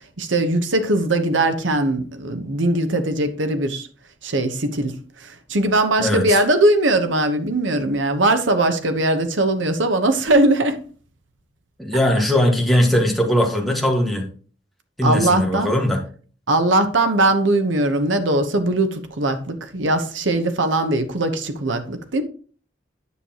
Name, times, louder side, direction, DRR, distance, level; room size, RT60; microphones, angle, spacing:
voice 1, 0.2-3.9 4.2-10.8 15.0-15.7 16.5-22.2, right 2 dB, 80° right, 1.0 m, -20 dB
voice 2, 6.0-6.4 11.8-14.3 15.0-16.0, left 1 dB, ahead, 1.7 m, -19 dB
9.8 x 6.5 x 3.0 m
head